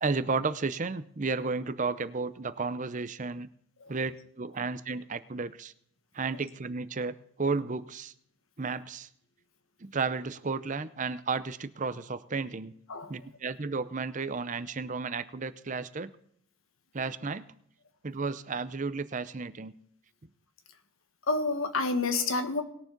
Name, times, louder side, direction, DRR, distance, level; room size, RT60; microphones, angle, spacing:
voice 1, 0.0-3.5 3.9-5.7 6.1-8.1 8.6-9.1 9.8-12.7 13.1-16.1 16.9-17.5 18.0-19.7, right 4 dB, 35° right, 13 dB, 0.6 m, -33 dB
voice 2, 21.3-22.6, left 3 dB, 75° left, 8 dB, 1.5 m, -28 dB
20.0 x 7.2 x 3.8 m, 0.69 s
head